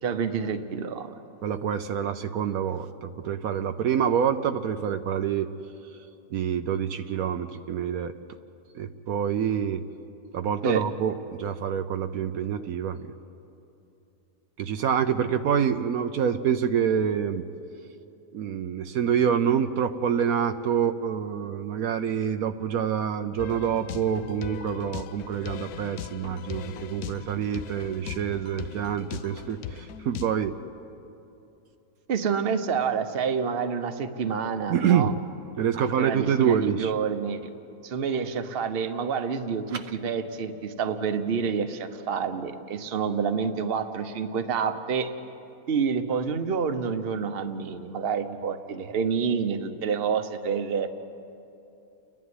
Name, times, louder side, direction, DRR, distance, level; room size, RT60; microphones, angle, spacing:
voice 1, 0.0-1.1 10.6-10.8 32.1-35.1 35.8-37.5 37.8-45.1 45.7-50.9, right 6 dB, 45° right, 8 dB, 1.1 m, -28 dB
voice 2, 1.4-5.5 6.3-8.1 8.7-9.8 10.3-13.1 14.6-17.4 18.3-30.5 34.7-35.1 35.6-36.9 39.7-39.8, right 8 dB, 75° right, 8 dB, 1.1 m, -26 dB
sound 1, 23.4-30.4, left 9 dB, 80° left, 1.2 m, -39 dB
29.5 x 11.0 x 9.6 m, 2.8 s
omnidirectional pair, 1.6 m